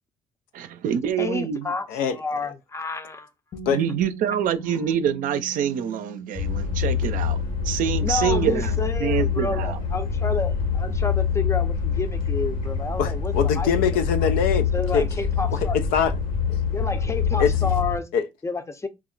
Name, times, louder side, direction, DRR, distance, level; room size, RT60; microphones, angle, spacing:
voice 1, 0.5-1.7 3.7-7.4 7.6-9.8, right 9 dB, 70° right, 0.5 m, -26 dB
voice 2, 1.2-3.3 8.0-13.7 14.7-15.8 16.7-18.1 18.4-18.9, left 3 dB, 20° left, 0.5 m, -30 dB
Bass guitar, 3.5-9.8, right 3 dB, 45° left, 1.0 m, -42 dB
sound 1, 6.4-18.0, left 6 dB, 65° left, 1.2 m, -25 dB
voice 3, 13.0-15.1 15.5-16.1 16.5-16.6 17.4-17.5 18.1-18.3, left 7 dB, 80° left, 0.4 m, -23 dB
2.4 x 2.1 x 3.8 m
supercardioid pair, 75°, 15 cm